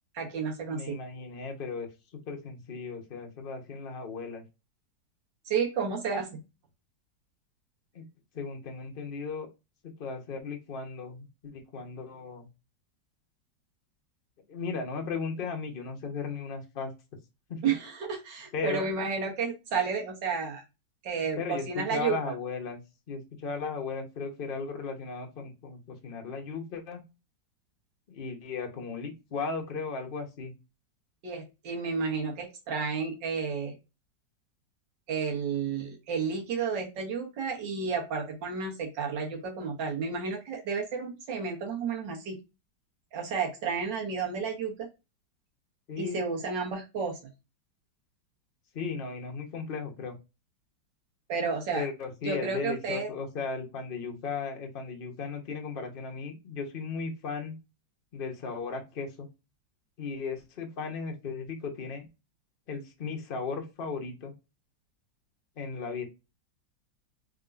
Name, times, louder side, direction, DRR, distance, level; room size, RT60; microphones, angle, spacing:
voice 1, 0.2-0.9 5.5-6.4 17.6-20.6 21.0-22.2 31.2-33.7 35.1-42.4 43.1-44.9 46.0-47.2 51.3-51.9 52.2-53.1, right 5 dB, 75° right, 0 dB, 1.9 m, -31 dB
voice 2, 0.7-1.9 2.3-4.4 7.9-8.0 8.3-9.5 9.8-12.5 14.5-16.9 17.5-17.6 18.5-18.8 21.4-22.8 23.1-27.0 28.1-30.5 45.9-46.2 48.7-50.1 51.7-57.5 58.1-59.3 60.0-62.1 62.7-64.3 65.6-66.0, left 5 dB, 40° left, 3 dB, 0.8 m, -36 dB
3.7 x 3.6 x 2.5 m, 0.27 s
omnidirectional pair, 2.0 m